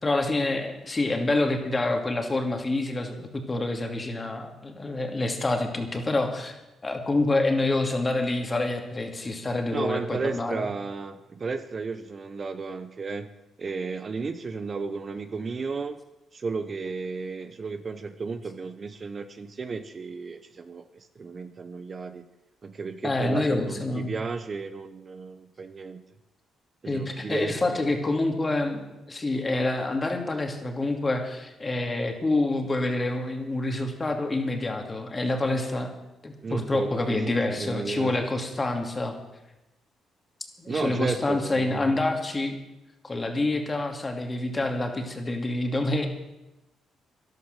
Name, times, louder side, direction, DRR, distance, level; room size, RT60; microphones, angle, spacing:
voice 1, 0.0-10.7 23.0-24.1 26.9-35.9 36.2-39.1 40.6-42.6 43.0-46.1, left 2 dB, 25° left, 4 dB, 2.5 m, -27 dB
voice 2, 9.7-13.3 13.6-16.0 16.3-22.3 22.6-26.0 26.8-27.6 36.4-37.2 37.5-38.2 40.7-42.0, right 4 dB, 40° right, 10 dB, 0.8 m, -33 dB
12.5 x 11.5 x 6.7 m, 0.98 s
cardioid pair, 90°, 0 cm